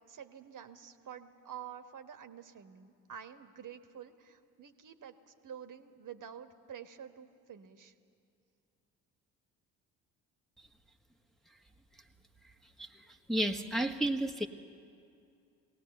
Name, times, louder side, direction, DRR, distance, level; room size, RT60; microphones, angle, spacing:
voice 1, 0.1-7.9, right 8 dB, 45° right, 8 dB, 1.4 m, -49 dB
voice 2, 13.3-14.5, right 1 dB, ahead, 2 dB, 1.4 m, -31 dB
21.5 x 17.5 x 8.0 m, 2.5 s
hypercardioid pair, 55°, 43 cm